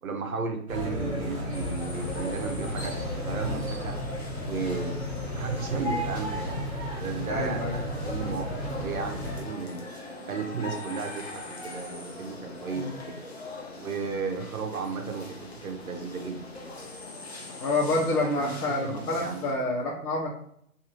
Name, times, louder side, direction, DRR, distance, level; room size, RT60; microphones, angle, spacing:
voice 1, 0.0-4.0 4.4-5.0 5.3-6.6 7.0-9.9 10.3-13.2 13.8-16.7 18.0-18.1 18.4-18.5 18.8-19.5, right 5 dB, 70° right, 4 dB, 0.7 m, -34 dB
sound 1, 0.7-9.4, left 1 dB, 25° right, 0.7 m, -33 dB
sound 2, 1.5-19.5, left 2 dB, 45° left, 0.6 m, -42 dB
voice 2, 7.3-7.8 12.7-12.9 17.6-20.3, left 2 dB, 80° left, -3 dB, 0.8 m, -28 dB
2.6 x 2.5 x 2.9 m, 0.68 s
hypercardioid pair, 175°, 45 cm